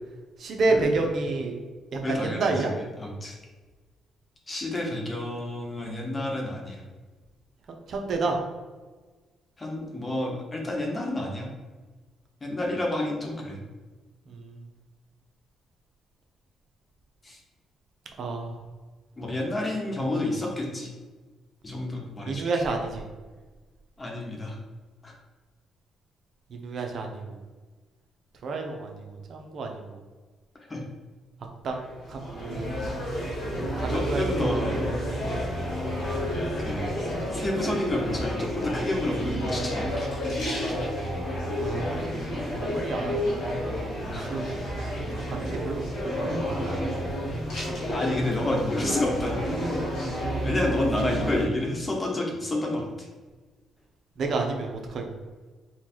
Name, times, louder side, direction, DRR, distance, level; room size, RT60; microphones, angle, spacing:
voice 1, 0.4-1.6 1.9-2.7 7.9-8.4 14.3-14.6 18.2-18.5 22.3-23.0 26.5-27.4 28.4-30.0 31.6-31.8 32.1-32.7 33.8-34.5 35.0-35.2 41.6-41.9 42.7-43.3 44.1-44.7 45.1-46.7 54.2-55.1, right 3 dB, 60° right, 2 dB, 0.8 m, -30 dB
voice 2, 2.0-2.7 3.0-3.3 4.5-6.8 9.6-11.5 12.4-13.6 17.2-17.4 19.2-20.9 21.6-22.6 24.0-24.6 25.0-25.1 30.6-30.9 33.9-34.8 36.6-36.9 37.3-40.0 44.0-44.3 47.9-49.6 50.4-53.1, left 1 dB, 25° left, 0 dB, 1.1 m, -30 dB
sound 1, 31.7-51.4, equal, 85° left, 1.5 m, -30 dB
4.4 x 2.4 x 4.4 m, 1.3 s
cardioid pair, 90°, 0 cm